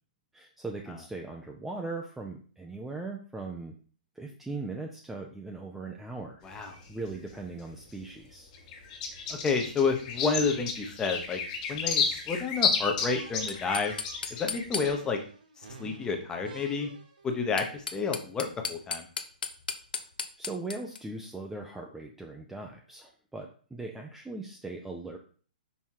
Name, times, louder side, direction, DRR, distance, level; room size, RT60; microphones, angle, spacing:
voice 1, 0.3-3.7 4.2-8.5 20.4-25.2, right 3 dB, 5° right, 1 dB, 0.6 m, -39 dB
sound 1, 6.4-7.9 8.3-14.9, left 5 dB, 40° left, 1.6 m, -32 dB
voice 2, 6.4-6.7 9.3-11.4 11.7-13.9 14.4-15.2 15.6-16.9 17.2-19.1, left 4 dB, 15° left, 4 dB, 1.0 m, -30 dB
sound 2, 13.0-17.3, right 4 dB, 65° right, 1.8 m, -49 dB
sound 3, 13.5-15.3 17.4-21.0, left 5 dB, 75° left, 0.7 m, -37 dB
5.6 x 4.2 x 4.7 m, 0.42 s
hypercardioid pair, 135°, 5 cm